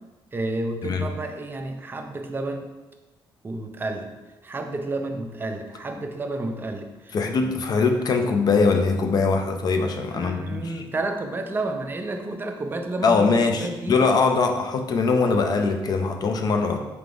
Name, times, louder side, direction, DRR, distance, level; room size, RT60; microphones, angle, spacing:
voice 1, 0.3-2.7 3.4-4.1 4.4-7.2 10.1-14.0, right 2 dB, 25° right, 5 dB, 0.4 m, -31 dB
voice 2, 7.1-10.8 13.0-16.8, left 4 dB, 50° left, 5 dB, 0.5 m, -22 dB
4.5 x 3.4 x 2.5 m, 1.1 s
cardioid pair, 105°, 9 cm